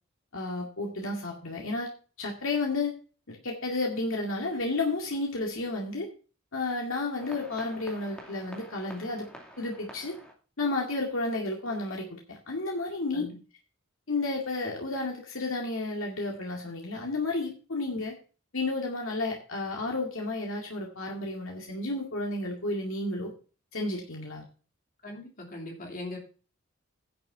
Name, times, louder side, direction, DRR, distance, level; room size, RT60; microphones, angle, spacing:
voice 1, 0.3-1.9 2.2-2.9 3.3-6.1 6.5-9.3 9.6-10.2 10.6-13.2 14.1-18.1 18.5-23.3 23.7-24.4, left 2 dB, 80° left, 0 dB, 2.2 m, -32 dB
sound 1, 7.2-10.3, equal, 5° left, 2.5 m, -48 dB
voice 2, 25.0-26.2, left 1 dB, 40° left, 1 dB, 3.1 m, -40 dB
10.5 x 6.7 x 5.6 m, 0.36 s
head